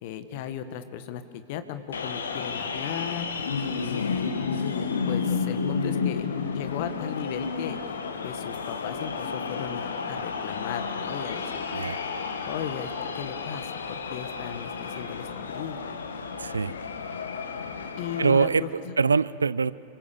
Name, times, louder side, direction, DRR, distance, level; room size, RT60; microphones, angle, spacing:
voice 1, 0.0-3.3 3.7-4.3 5.1-6.3 6.5-7.8 8.2-11.9 12.4-16.0 18.0-19.0, left 9 dB, 50° left, 10 dB, 1.8 m, -36 dB
sound 1, 1.9-18.4, left 5 dB, 70° left, 1.7 m, -31 dB
voice 2, 16.4-16.7 18.2-18.6 19.0-19.7, right 5 dB, 75° right, 18 dB, 0.6 m, -23 dB
29.5 x 24.5 x 7.1 m, 2.2 s
figure-of-eight pair, 90°, 0 cm